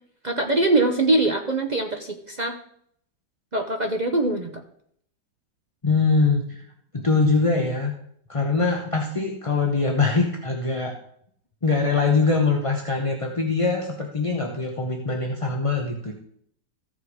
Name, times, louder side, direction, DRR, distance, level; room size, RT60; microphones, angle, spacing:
voice 1, 0.2-2.6 3.5-4.6, right 2 dB, 40° right, 3 dB, 0.6 m, -23 dB
voice 2, 5.8-6.6 6.9-7.9 8.3-11.0 11.6-16.1, left 4 dB, 25° left, 1 dB, 0.7 m, -23 dB
14.5 x 5.7 x 4.8 m, 0.66 s
omnidirectional pair, 1.9 m